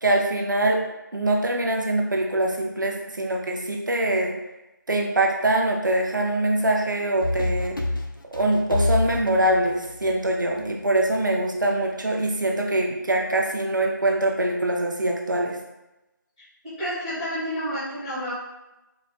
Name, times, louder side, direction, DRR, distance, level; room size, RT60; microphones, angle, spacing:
voice 1, 0.0-0.8 1.1-4.3 4.9-7.8 8.3-15.6, right 1 dB, 70° right, 0 dB, 0.6 m, -23 dB
sound 1, 7.2-10.6, left 2 dB, 90° left, 0.4 m, -27 dB
voice 2, 16.6-18.3, equal, ahead, -14 dB, 0.4 m, -30 dB
4.0 x 2.1 x 2.4 m, 0.99 s
figure-of-eight pair, 160°, 11 cm